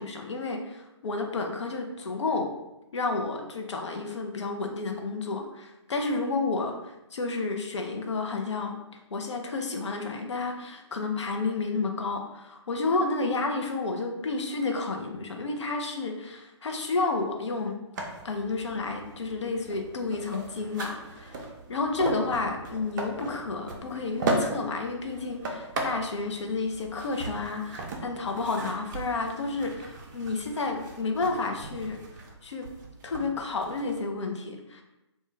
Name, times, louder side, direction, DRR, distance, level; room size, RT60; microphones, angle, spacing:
voice 1, 0.0-2.5 2.9-8.8 9.1-17.8 18.2-21.4 21.7-32.0 32.4-32.7 33.0-34.8, left 3 dB, 70° left, 3 dB, 0.5 m, -31 dB
sound 1, 17.9-34.0, right 2 dB, 40° right, 0.4 m, -37 dB
2.3 x 2.1 x 3.0 m, 0.95 s
figure-of-eight pair, 130°, 15 cm